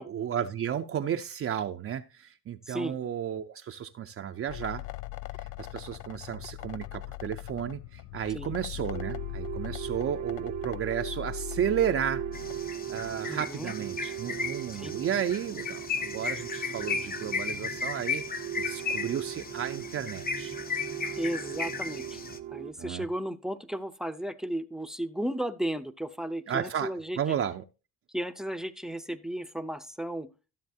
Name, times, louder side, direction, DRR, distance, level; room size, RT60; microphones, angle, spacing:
voice 1, 0.1-4.8 5.4-12.2 12.9-18.2 18.6-20.6 22.8-23.1 26.5-27.6, right 9 dB, 45° right, 6 dB, 0.5 m, -33 dB
voice 2, 2.7-3.0 8.3-8.5 13.3-13.7 14.7-14.9 21.2-22.2 22.5-27.2 28.1-30.3, right 1 dB, ahead, 12 dB, 0.6 m, -34 dB
sound 1, 4.5-13.1, left 18 dB, 70° left, 0.5 m, -40 dB
sound 2, 8.9-22.7, right 12 dB, 80° right, 0.8 m, -39 dB
sound 3, 12.3-22.4, left 5 dB, 30° left, 0.7 m, -35 dB
13.0 x 7.3 x 2.7 m, 0.31 s
cardioid pair, 90°, 30 cm